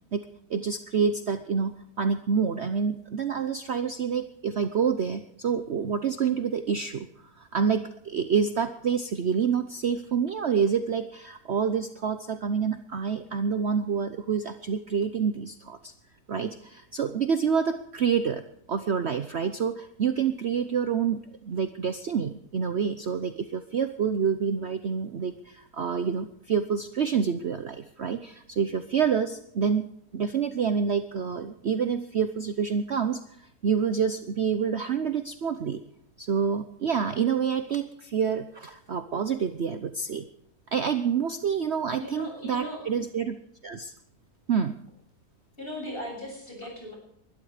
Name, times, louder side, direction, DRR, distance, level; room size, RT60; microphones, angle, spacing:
voice 1, 0.1-7.1 7.4-15.9 16.3-18.4 18.7-29.9 30.1-35.8 36.2-40.3 40.7-43.4 43.6-43.9 44.5-44.7, right 6 dB, 50° right, 9 dB, 1.0 m, -27 dB
voice 2, 42.0-42.8 45.6-47.0, left 1 dB, 35° left, -1 dB, 7.1 m, -37 dB
21.5 x 12.5 x 5.0 m, 0.73 s
omnidirectional pair, 1.7 m